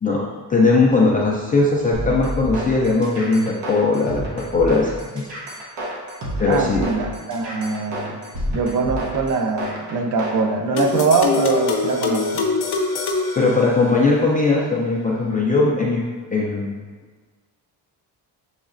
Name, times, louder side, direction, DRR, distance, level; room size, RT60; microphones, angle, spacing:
voice 1, 0.0-5.3 6.4-6.9 13.4-16.0 16.3-16.7, left 3 dB, 20° left, -4 dB, 0.3 m, -19 dB
sound 1, 1.9-10.4, right 1 dB, 80° right, 1.1 m, -30 dB
voice 2, 6.4-8.2 8.5-12.5, right 4 dB, 50° right, 3 dB, 0.5 m, -22 dB
sound 2, 10.8-14.2, left 4 dB, 65° left, 0.7 m, -24 dB
7.1 x 3.1 x 2.5 m, 1.5 s
cardioid pair, 170°, 42 cm